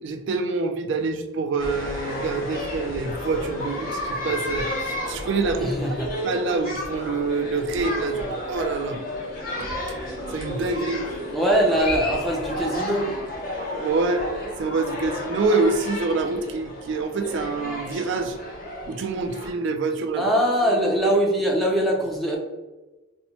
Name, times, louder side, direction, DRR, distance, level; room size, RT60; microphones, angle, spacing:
voice 1, 0.0-5.9 6.2-9.0 9.6-9.7 10.3-11.0 13.7-14.2 14.6-18.4 18.9-20.3, right 3 dB, 60° right, 6 dB, 0.3 m, -26 dB
sound 1, 1.6-19.5, left 1 dB, 45° left, 0.8 m, -32 dB
voice 2, 5.6-6.1 11.3-13.1 20.2-22.4, equal, ahead, -2 dB, 0.5 m, -22 dB
4.2 x 2.1 x 2.8 m, 1.1 s
head